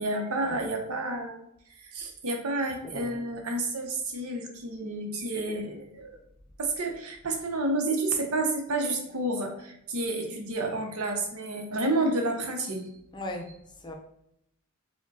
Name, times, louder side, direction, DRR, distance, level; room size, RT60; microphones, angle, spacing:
voice 1, 0.0-1.4 1.8-6.2 6.6-12.9, right 2 dB, 85° right, 3 dB, 0.9 m, -30 dB
voice 2, 13.1-13.9, left 1 dB, 20° left, 3 dB, 0.6 m, -38 dB
4.9 x 2.2 x 4.0 m, 0.76 s
head